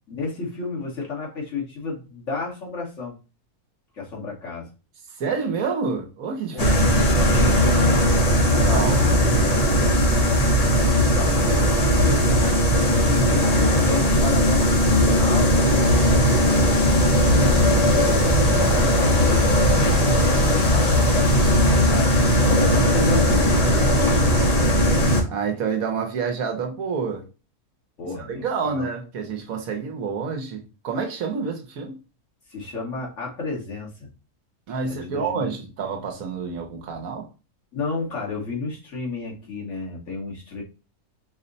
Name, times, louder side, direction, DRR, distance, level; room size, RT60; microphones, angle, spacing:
voice 1, 0.1-3.2 3.9-4.7 6.5-8.0 11.0-15.6 16.2-22.1 22.6-24.1 28.0-28.9 32.5-34.1 34.8-35.5 37.7-40.6, left 4 dB, 55° left, 1.6 m, -31 dB
voice 2, 5.2-6.8 7.1-7.6 8.6-10.0 25.3-27.2 28.2-32.0 34.7-37.3, right 5 dB, 70° right, 1.2 m, -28 dB
sound 1, 6.6-25.2, equal, 35° left, 0.7 m, -18 dB
4.9 x 2.1 x 3.9 m
omnidirectional pair, 1.6 m